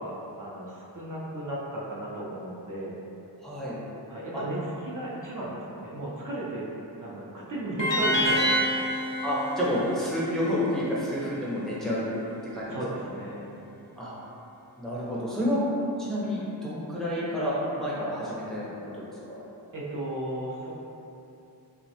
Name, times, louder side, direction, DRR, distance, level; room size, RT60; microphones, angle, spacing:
voice 1, 0.0-3.0 4.1-6.7 7.0-8.5 12.3-12.4 12.7-13.5 19.7-20.7, right 1 dB, 50° right, -6 dB, 0.4 m, -35 dB
voice 2, 3.4-3.8 4.3-4.4 9.2-12.1 12.4-13.1 13.9-14.1 14.8-15.6 16.0-19.4, equal, ahead, -8 dB, 0.5 m, -30 dB
sound 1, 7.8-10.9, equal, 75° left, 0.6 m, -27 dB
3.0 x 2.1 x 2.7 m, 2.9 s
wide cardioid pair, 80°, 43 cm